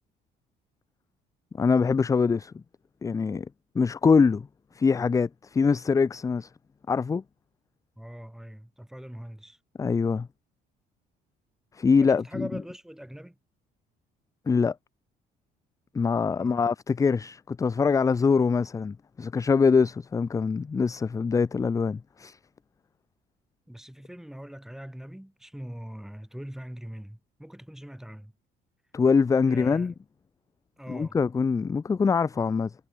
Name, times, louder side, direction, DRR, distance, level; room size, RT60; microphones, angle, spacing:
voice 1, 1.5-2.6 3.0-3.5 3.7-4.5 4.7-6.5 6.9-7.2 9.8-10.3 11.7-12.5 14.5-14.8 15.9-22.4 28.9-29.9 30.9-32.7, left 5 dB, 20° left, 0.4 m, -24 dB
voice 2, 8.0-9.6 12.0-13.4 16.4-16.7 23.7-28.3 29.4-30.0 30.8-31.2, equal, 5° right, 3.4 m, -42 dB
cardioid pair, 110°, 17 cm